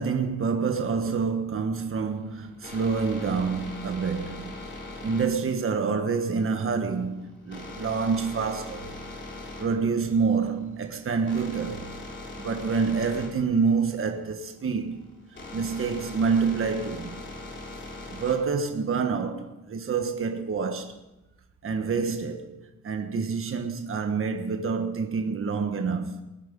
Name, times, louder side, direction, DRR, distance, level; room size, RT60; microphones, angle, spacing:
voice 1, 0.0-4.6 5.0-9.0 9.6-11.9 12.4-15.1 15.5-17.2 18.1-21.0 21.6-22.5 22.8-26.2, right 5 dB, 40° right, 1.3 m, -27 dB
sound 1, 2.0-18.6, left 2 dB, 35° left, 3.3 m, -41 dB
20.5 x 9.0 x 5.4 m
wide cardioid pair, 140°, 33 cm